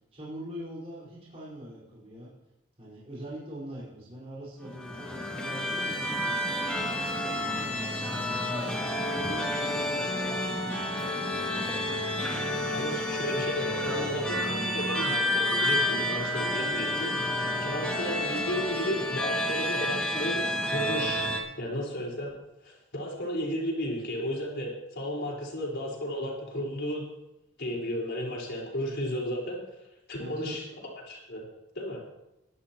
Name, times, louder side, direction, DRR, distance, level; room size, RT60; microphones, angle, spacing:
voice 1, 0.1-2.3 2.8-8.0 8.4-8.8 9.1-11.5 30.2-30.7, right 1 dB, 30° right, -8 dB, 4.6 m, -43 dB
sound 1, 4.6-21.4, left 1 dB, 5° left, 2.1 m, -30 dB
voice 2, 12.6-22.3 22.6-27.1 27.6-29.6 30.1-30.6 31.1-31.4 31.7-32.0, equal, 55° left, -2 dB, 4.6 m, -34 dB
21.5 x 11.5 x 3.0 m, 0.93 s
head